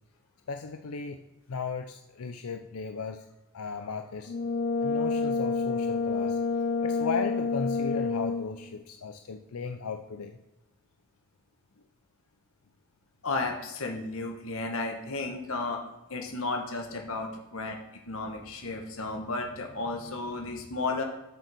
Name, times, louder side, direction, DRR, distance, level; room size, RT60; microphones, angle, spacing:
voice 1, 0.5-1.2 1.5-3.2 3.5-4.3 4.8-6.4 6.8-10.3, left 5 dB, 90° left, 6 dB, 0.6 m, -36 dB
Brass instrument, 4.3-8.6, left 4 dB, 45° left, 0.8 m, -28 dB
voice 2, 13.2-15.8 16.1-17.8 18.1-21.0, left 3 dB, 70° left, 2 dB, 1.8 m, -33 dB
8.4 x 6.7 x 6.1 m, 1.0 s
head